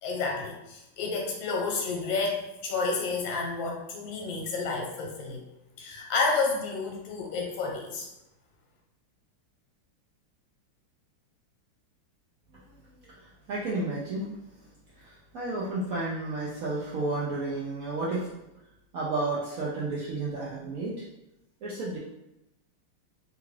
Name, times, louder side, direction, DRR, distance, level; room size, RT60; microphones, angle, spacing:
voice 1, 0.0-5.4 5.8-8.1, left 4 dB, 75° left, 0 dB, 1.4 m, -30 dB
voice 2, 13.0-14.3 15.0-18.3 18.9-20.9 21.6-22.0, right 2 dB, 80° right, -7 dB, 0.7 m, -32 dB
3.5 x 2.4 x 3.2 m, 0.92 s
omnidirectional pair, 2.2 m